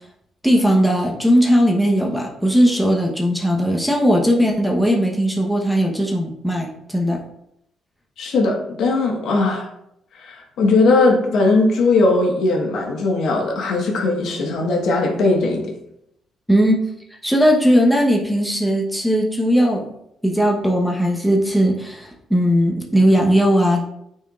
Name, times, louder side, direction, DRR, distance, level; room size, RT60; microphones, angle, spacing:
voice 1, 0.4-7.2 16.5-16.8 17.2-19.9 20.2-23.8, equal, ahead, 0 dB, 1.0 m, -18 dB
voice 2, 8.2-9.6 10.2-15.7, left 3 dB, 75° left, 0 dB, 1.4 m, -18 dB
8.9 x 4.5 x 2.5 m, 0.78 s
cardioid pair, 95°, 0 cm